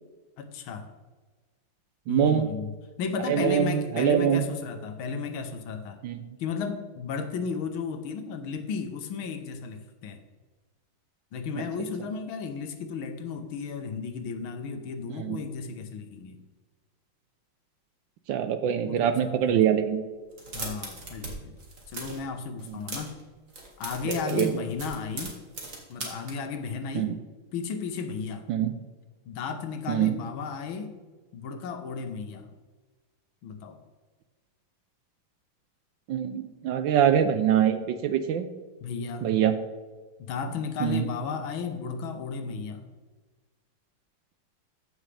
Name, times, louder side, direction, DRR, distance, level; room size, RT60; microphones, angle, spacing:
voice 1, 0.4-0.9 2.1-6.0 6.4-10.2 11.3-16.4 18.8-19.5 20.5-21.6 21.9-23.2 23.8-25.4 25.9-27.2 27.5-28.5 29.2-31.0 31.3-32.5 33.4-33.8 38.8-39.4 40.2-42.8, left 5 dB, 75° left, 7 dB, 1.7 m, -34 dB
voice 2, 2.1-2.5 3.3-4.5 6.0-6.2 15.2-15.4 18.3-20.0 24.1-24.5 26.9-27.1 28.5-28.7 29.9-30.1 36.1-38.5 39.2-39.6 40.8-41.0, right 9 dB, 75° right, 9 dB, 1.2 m, -24 dB
sound 1, 20.3-21.3 21.6-22.2 22.6-23.2 23.5-26.3, right 3 dB, 40° right, 2.0 m, -38 dB
14.5 x 6.4 x 3.3 m, 1.3 s
omnidirectional pair, 2.3 m